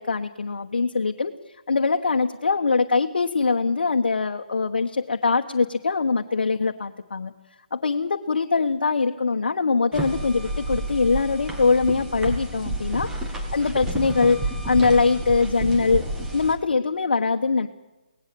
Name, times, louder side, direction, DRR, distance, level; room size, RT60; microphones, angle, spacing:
voice 1, 0.0-1.3 1.7-7.3 7.7-14.4 14.6-16.0 16.3-17.7, left 4 dB, 75° left, 4 dB, 1.2 m, -22 dB
sound 1, 9.9-16.5, right 2 dB, 10° right, 1.8 m, -30 dB
23.5 x 18.5 x 7.7 m, 1.1 s
hypercardioid pair, 165°, 5 cm